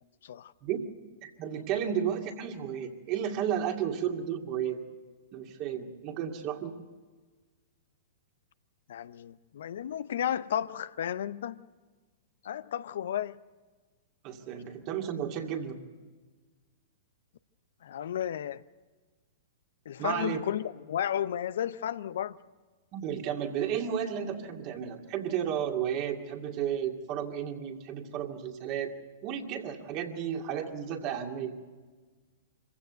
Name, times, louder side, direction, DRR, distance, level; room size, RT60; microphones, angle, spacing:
voice 1, 1.2-4.8 5.3-6.8 14.2-15.8 20.0-20.4 22.9-28.9 29.2-31.6, right 9 dB, 40° right, 2.3 m, -33 dB
voice 2, 8.9-11.6 12.4-13.4 17.8-18.6 19.9-22.4, left 10 dB, 70° left, 0.6 m, -33 dB
25.0 x 15.5 x 7.9 m
hypercardioid pair, 110°, 0 cm